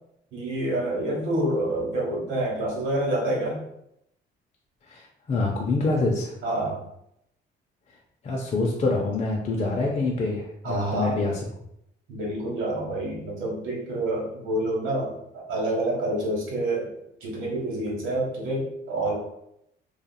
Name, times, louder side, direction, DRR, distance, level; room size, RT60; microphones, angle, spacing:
voice 1, 0.3-3.6 6.4-6.8 10.6-11.2 12.1-16.9 17.2-19.2, right 1 dB, 80° right, -3 dB, 1.1 m, -27 dB
voice 2, 4.8-6.3 8.2-11.4, left 3 dB, 35° left, -2 dB, 0.5 m, -26 dB
2.8 x 2.4 x 2.2 m, 0.77 s
cardioid pair, 90°, 20 cm